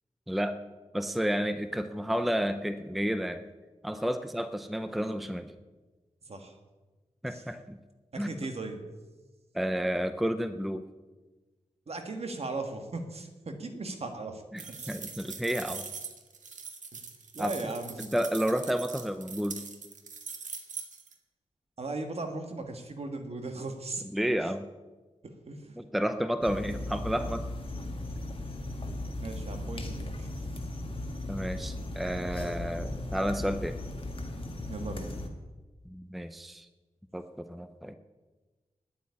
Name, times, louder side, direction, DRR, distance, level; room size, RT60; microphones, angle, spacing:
voice 1, 0.3-0.6 0.9-3.5 3.8-5.5 7.2-7.8 8.2-8.3 9.5-10.9 14.5-15.9 17.4-17.7 18.0-19.6 24.1-24.7 25.8-27.5 31.3-33.8 35.8-36.7 37.1-37.9, equal, ahead, 10 dB, 0.5 m, -31 dB
voice 2, 8.1-8.8 11.9-14.4 14.8-14.9 17.3-18.0 21.8-24.0 25.2-25.8 29.2-30.3 34.7-35.1, right 2 dB, 55° right, 6 dB, 1.6 m, -37 dB
sound 1, 14.6-21.1, right 5 dB, 80° right, 1.5 m, -42 dB
sound 2, 26.4-35.3, left 1 dB, 45° left, 1.6 m, -37 dB
9.6 x 8.3 x 9.7 m, 1.2 s
wide cardioid pair, 115°, 13 cm